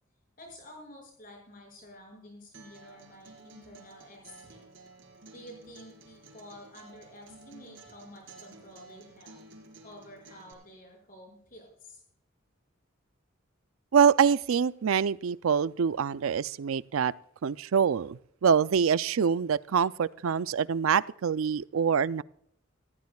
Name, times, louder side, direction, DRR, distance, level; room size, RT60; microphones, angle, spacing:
voice 1, 0.4-4.6 5.3-9.4 9.8-12.0, left 1 dB, 40° left, 0 dB, 5.9 m, -50 dB
Acoustic guitar, 2.5-10.5, right 3 dB, 65° right, 4.0 m, -53 dB
voice 2, 13.9-17.1 17.4-22.2, right 7 dB, 85° right, 17 dB, 0.4 m, -25 dB
19.0 x 15.0 x 2.3 m, 0.68 s
head